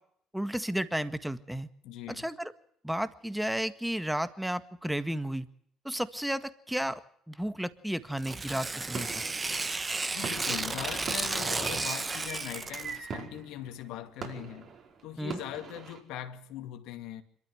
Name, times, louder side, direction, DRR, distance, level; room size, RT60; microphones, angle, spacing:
voice 1, 0.3-1.7 2.1-2.5 2.8-5.5 5.9-7.0 7.3-9.2 15.2-15.4, equal, 5° right, 1.7 m, -33 dB
voice 2, 1.8-2.3 10.1-14.7 15.0-17.2, left 12 dB, 75° left, 2.2 m, -41 dB
Tearing, 8.2-13.0, right 3 dB, 25° right, 1.6 m, -33 dB
sound 1, 8.4-8.5 8.9-16.0, right 6 dB, 50° right, 5.1 m, -42 dB
26.5 x 13.5 x 7.9 m
hypercardioid pair, 60°, 0 cm